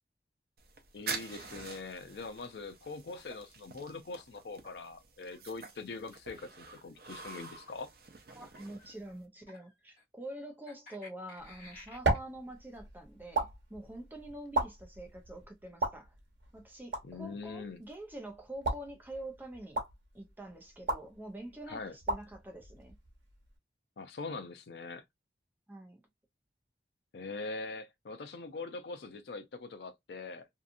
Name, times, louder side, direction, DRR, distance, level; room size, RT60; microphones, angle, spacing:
sound 1, 0.6-9.3, right 5 dB, 55° right, 0.6 m, -47 dB
voice 1, 0.9-7.9 17.0-17.8 21.7-22.0 24.0-25.0 27.1-30.5, left 3 dB, 70° left, 0.5 m, -42 dB
sound 2, 3.1-3.4 4.2-4.7 5.2-5.6 6.2-6.8 7.4-7.7 8.5-9.1 9.5-10.0 10.7-12.2, left 1 dB, 50° left, 1.3 m, -55 dB
voice 2, 8.3-16.1 16.5-19.8 20.1-22.9 25.7-26.0, right 1 dB, 10° right, 0.6 m, -46 dB
sound 3, 11.4-23.6, right 2 dB, 90° right, 0.9 m, -38 dB
2.8 x 2.4 x 2.5 m
head